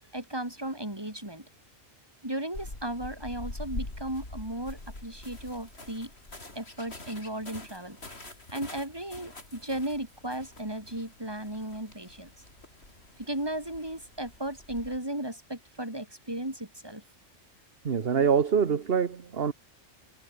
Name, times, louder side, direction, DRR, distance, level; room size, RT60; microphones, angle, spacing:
voice 1, 0.1-1.5 2.2-6.1 6.6-12.3 13.2-17.0, right 1 dB, 20° right, 4.2 m, -36 dB
sound 1, 2.5-15.0, left 2 dB, 50° left, 5.2 m, -44 dB
voice 2, 17.8-19.5, right 6 dB, 50° right, 1.4 m, -25 dB
omnidirectional pair, 1.3 m